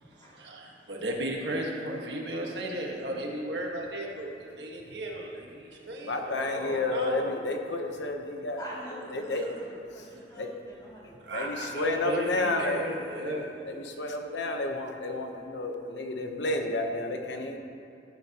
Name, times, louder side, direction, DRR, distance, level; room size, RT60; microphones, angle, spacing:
voice 1, 0.3-7.3 9.3-9.5 11.2-13.5, right 1 dB, 70° right, -1 dB, 1.5 m, -35 dB
voice 2, 6.0-8.6 9.1-9.5 10.4-10.5 11.3-12.8 13.2-17.6, left 2 dB, 80° left, 4 dB, 1.0 m, -31 dB
voice 3, 8.6-12.0, equal, 25° left, -7 dB, 2.6 m, -45 dB
13.5 x 9.6 x 3.0 m, 2.6 s
head